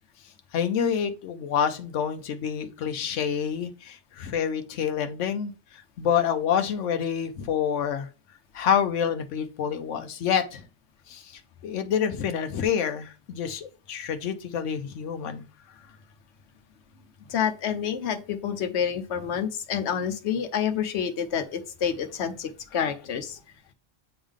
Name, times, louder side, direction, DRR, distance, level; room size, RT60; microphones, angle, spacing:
voice 1, 0.5-5.5 6.0-8.1 8.5-10.6 11.1-15.4, left 8 dB, 90° left, 7 dB, 1.0 m, -27 dB
voice 2, 17.3-23.4, left 8 dB, 70° left, 7 dB, 1.1 m, -28 dB
7.9 x 3.6 x 3.5 m, 0.34 s
omnidirectional pair, 1.2 m